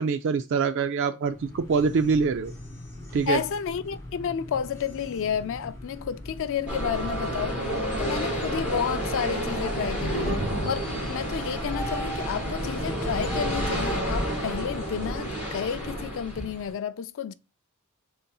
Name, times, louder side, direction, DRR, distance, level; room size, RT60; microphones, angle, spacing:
voice 1, 0.0-2.5 3.1-3.4, right 5 dB, 55° right, 0.3 m, -24 dB
sound 1, 1.2-15.7, equal, 10° left, 2.0 m, -39 dB
voice 2, 3.3-7.6 8.0-17.3, left 7 dB, 60° left, 0.4 m, -31 dB
sound 2, 6.7-16.7, right 1 dB, 10° right, 3.0 m, -31 dB
sound 3, 7.2-11.6, right 1 dB, 35° right, 2.4 m, -35 dB
5.2 x 3.9 x 2.3 m
head